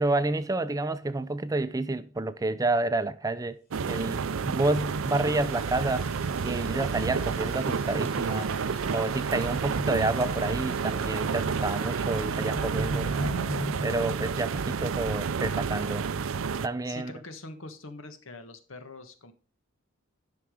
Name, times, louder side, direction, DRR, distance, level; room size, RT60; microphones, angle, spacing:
voice 1, 0.0-3.6 3.9-6.1 6.4-8.5 8.9-13.3 13.8-16.0 16.6-17.1, right 2 dB, 15° right, 0.5 m, -29 dB
sound 1, 3.7-16.7, right 5 dB, 90° right, 0.5 m, -30 dB
sound 2, 4.4-15.1, equal, 50° left, 3.4 m, -42 dB
voice 2, 16.8-19.3, left 2 dB, 80° left, 1.5 m, -43 dB
11.0 x 5.9 x 5.0 m
head